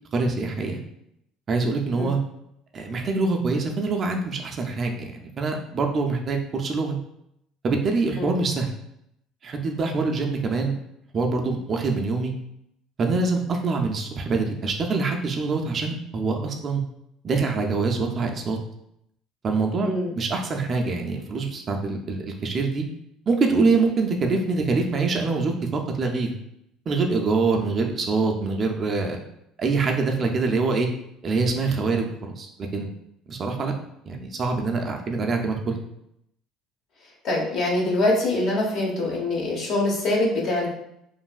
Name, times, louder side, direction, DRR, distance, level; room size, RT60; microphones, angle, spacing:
voice 1, 0.1-0.8 1.5-2.2 2.7-7.0 7.6-8.7 9.4-10.7 11.1-12.3 13.0-16.8 17.2-18.6 19.4-22.8 23.3-26.3 26.9-29.2 29.6-30.9 31.2-32.9 33.3-33.7 34.1-35.8, right 3 dB, 40° right, 3 dB, 0.4 m, -25 dB
voice 2, 37.2-40.7, left 2 dB, 60° left, -3 dB, 1.0 m, -24 dB
3.1 x 2.6 x 2.3 m, 0.76 s
supercardioid pair, 105°, 0 cm